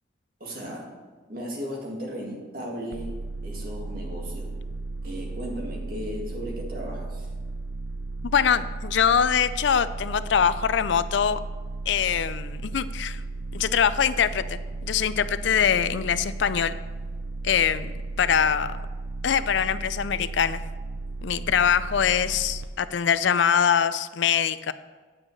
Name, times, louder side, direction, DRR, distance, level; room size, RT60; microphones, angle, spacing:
voice 1, 0.4-0.9 1.3-3.2 3.4-4.5 5.0-7.3 18.3-18.5, equal, 50° right, -1 dB, 2.1 m, -36 dB
sound 1, 2.9-22.7, right 2 dB, 70° right, 0.7 m, -35 dB
voice 2, 8.3-11.4 11.9-13.2 13.5-16.8 17.4-17.9 18.2-18.7 19.2-20.6 21.2-24.7, left 8 dB, 70° left, 14 dB, 0.4 m, -23 dB
9.0 x 6.1 x 6.5 m, 1.4 s
head